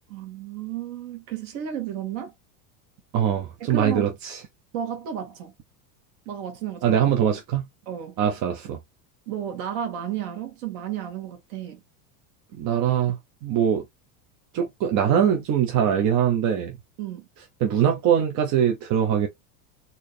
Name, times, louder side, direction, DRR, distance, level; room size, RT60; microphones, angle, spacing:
voice 1, 0.1-2.3 3.7-4.1 4.7-5.5 6.3-7.0 7.9-8.2 9.3-11.8 17.0-17.3, right 9 dB, 55° right, 2.0 m, -32 dB
voice 2, 3.1-4.4 6.8-7.7 8.2-8.8 12.5-13.8 14.5-16.8 17.6-19.3, right 9 dB, 40° right, 0.9 m, -22 dB
4.4 x 2.9 x 3.2 m
supercardioid pair, 155°, 46 cm